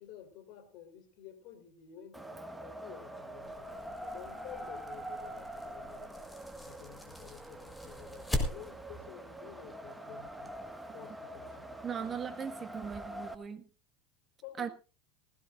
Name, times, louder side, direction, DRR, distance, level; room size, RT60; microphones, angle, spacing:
voice 1, 0.0-6.1 6.6-10.5 10.9-12.2 14.4-14.7, left 10 dB, 60° left, 3.9 m, -52 dB
Wind, 2.1-13.3, right 1 dB, 5° right, 1.7 m, -45 dB
sound 1, 3.4-9.0, left 2 dB, 10° left, 4.3 m, -41 dB
voice 2, 11.8-13.7 14.6-14.7, right 7 dB, 30° right, 1.9 m, -38 dB
19.0 x 16.5 x 2.6 m
hypercardioid pair, 85°, 0 cm